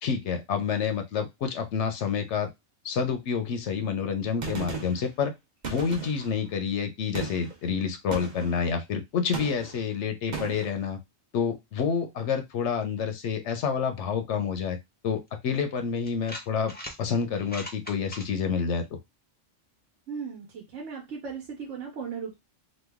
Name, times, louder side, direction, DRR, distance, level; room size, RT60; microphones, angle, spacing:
voice 1, 0.0-2.5 2.8-5.3 5.7-11.0 11.3-14.8 15.0-16.7 17.0-19.0, left 6 dB, 75° left, 7 dB, 0.9 m, -28 dB
Gunshot gunfire, 4.4-5.1 5.6-6.4 7.1-7.6 8.1-8.6 9.3-9.8 10.3-10.7, right 4 dB, 40° right, 0.9 m, -36 dB
sound 1, 15.3-15.4 16.1-17.0 17.3-18.3, left 1 dB, 10° left, 0.4 m, -39 dB
voice 2, 20.1-22.3, right 6 dB, 75° right, -1 dB, 1.2 m, -37 dB
3.1 x 2.2 x 3.4 m, 0.20 s
omnidirectional pair, 1.3 m